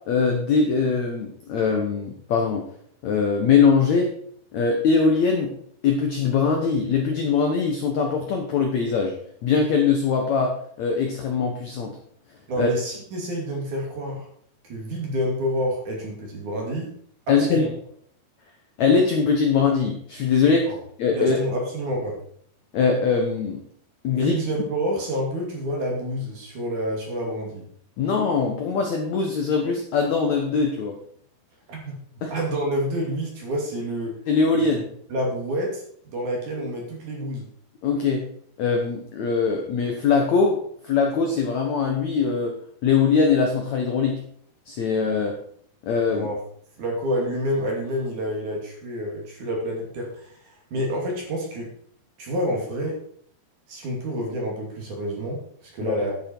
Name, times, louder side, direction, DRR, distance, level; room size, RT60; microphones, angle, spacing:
voice 1, 0.1-2.6 3.0-4.1 4.5-5.5 5.8-9.1 9.4-12.0 12.6-12.7 17.3-17.7 18.8-20.7 21.0-21.4 22.7-23.6 24.0-24.4 28.0-31.0 32.2-32.3 34.3-34.9 37.8-38.2 38.6-40.6 40.8-42.5 42.8-44.2 44.7-45.3 45.8-46.3 55.8-56.0, left 5 dB, 70° left, 2 dB, 1.7 m, -22 dB
voice 2, 12.5-14.3 14.6-16.9 17.3-17.7 20.7-20.8 21.1-22.2 24.1-27.7 31.7-34.2 35.1-35.8 36.1-37.5 46.1-46.4 46.8-51.7 52.2-53.0 53.7-56.2, equal, 50° right, 0 dB, 3.6 m, -28 dB
10.0 x 8.5 x 4.4 m, 0.62 s
omnidirectional pair, 4.7 m